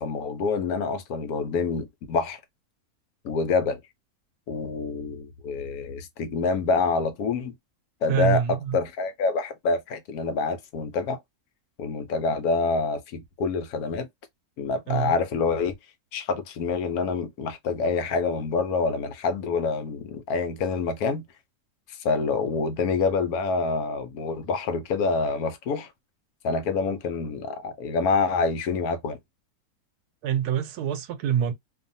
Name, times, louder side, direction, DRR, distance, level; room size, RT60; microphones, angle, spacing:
voice 1, 0.0-2.4 3.2-3.8 4.5-7.5 8.0-11.2 11.8-14.1 14.6-15.7 16.1-21.2 21.9-25.9 26.4-29.2, left 4 dB, 75° left, 1.1 m, -26 dB
voice 2, 8.1-8.8 14.9-15.1 30.2-31.5, right 9 dB, 90° right, 1.1 m, -25 dB
2.6 x 2.4 x 2.6 m
omnidirectional pair, 1.6 m